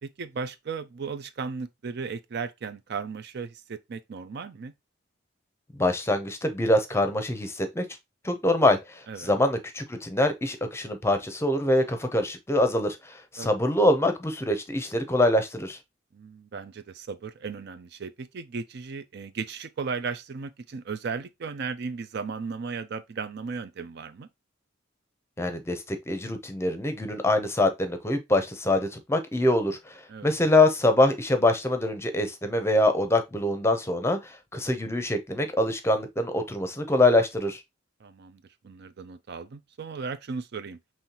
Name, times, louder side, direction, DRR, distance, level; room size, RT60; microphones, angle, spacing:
voice 1, 0.0-4.7 9.1-9.3 13.4-13.5 16.1-24.3 30.1-30.3 38.0-40.8, right 5 dB, 55° right, 0.4 m, -36 dB
voice 2, 5.7-7.8 8.2-15.8 25.4-37.6, left 1 dB, 15° left, 0.6 m, -24 dB
5.5 x 3.1 x 2.8 m
head